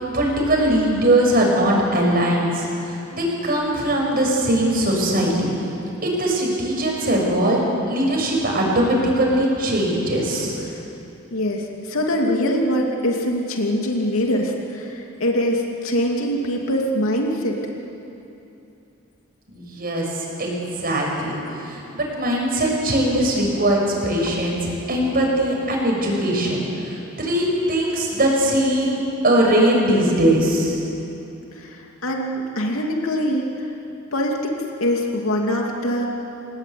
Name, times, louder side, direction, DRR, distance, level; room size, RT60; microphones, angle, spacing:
voice 1, 0.1-5.5 6.0-7.6 7.9-10.6 19.5-30.8, right 1 dB, 45° right, -2 dB, 6.9 m, -21 dB
voice 2, 11.3-17.6 31.5-33.8 34.1-36.1, equal, 80° left, 0 dB, 2.8 m, -23 dB
28.5 x 18.5 x 9.4 m, 2.8 s
head